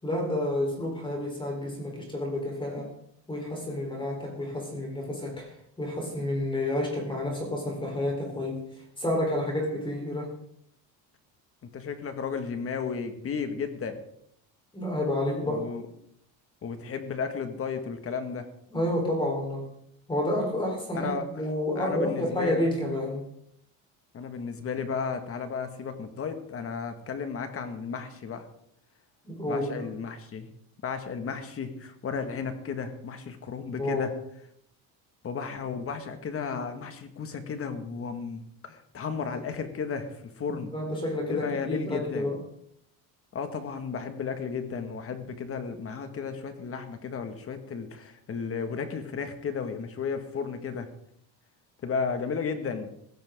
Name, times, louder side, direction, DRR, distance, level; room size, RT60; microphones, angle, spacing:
voice 1, 0.0-2.9 3.3-8.6 9.0-10.3 14.7-15.6 18.7-19.7 20.1-23.3 29.2-29.9 33.8-34.1 40.5-42.4, left 1 dB, 15° left, 0 dB, 4.1 m, -30 dB
voice 2, 11.7-14.0 15.4-15.8 16.6-18.5 20.9-21.3 21.8-22.7 24.1-28.5 29.5-30.5 30.8-34.1 35.2-40.7 41.3-42.3 43.3-50.9 51.8-52.9, left 5 dB, 35° left, 7 dB, 1.9 m, -34 dB
16.0 x 16.0 x 3.8 m, 0.72 s
cardioid pair, 140°, 37 cm